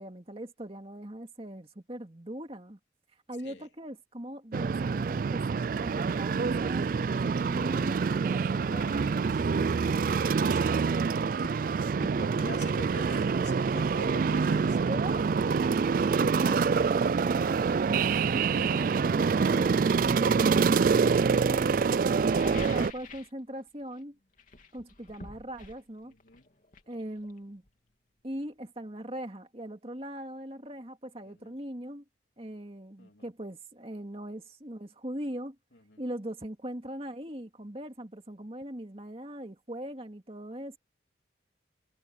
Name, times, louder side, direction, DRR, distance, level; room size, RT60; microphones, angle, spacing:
voice 1, 0.0-2.8 3.3-5.4 5.8-9.3 14.9-17.7 20.2-22.0 22.3-24.2 24.7-26.1 26.9-27.6 28.2-32.0 32.4-35.6 36.0-40.8, right 1 dB, 30° right, 2.3 m, -40 dB
sound 1, 4.5-22.9, right 5 dB, 45° right, 0.3 m, -26 dB
voice 2, 8.7-11.2 12.1-14.8 17.0-17.9 18.4-18.9 26.0-26.5 31.2-31.5 33.0-33.3 35.7-36.0, left 2 dB, 75° left, 2.8 m, -47 dB
sound 2, 11.4-11.7 12.0-12.2 14.1-14.2 14.6-16.3 17.4-17.5 18.0-19.4 20.0-20.8 22.1-23.4 23.7-24.0 24.3-27.9 28.2-28.3, left 2 dB, 45° left, 3.2 m, -48 dB
head